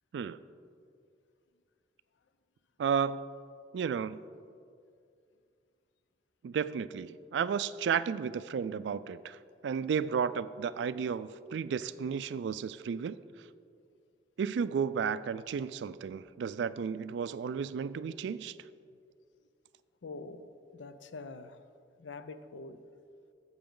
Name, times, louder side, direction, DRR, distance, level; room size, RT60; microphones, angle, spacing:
voice 1, 2.8-3.2 3.7-4.2 6.4-9.4 9.6-13.2 14.4-18.6, right 6 dB, 70° right, 0.3 m, -33 dB
voice 2, 20.0-21.6 22.0-22.8, left 3 dB, 90° left, 0.5 m, -45 dB
12.0 x 7.9 x 3.8 m
head